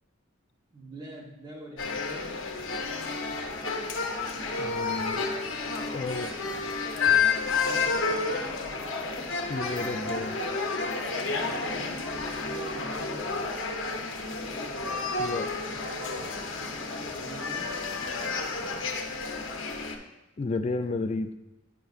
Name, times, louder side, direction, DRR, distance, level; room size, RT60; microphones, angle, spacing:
voice 1, 0.7-2.3 7.6-8.7 11.4-12.1 12.5-13.5 17.1-18.1, right 1 dB, 20° right, 0 dB, 0.8 m, -44 dB
sound 1, 1.8-20.0, left 4 dB, 70° left, 0.8 m, -30 dB
voice 2, 4.6-5.3 5.9-6.3 9.5-10.4 15.2-15.5 20.4-21.4, left 3 dB, 30° left, 8 dB, 0.3 m, -32 dB
9.1 x 5.6 x 2.4 m, 0.98 s
head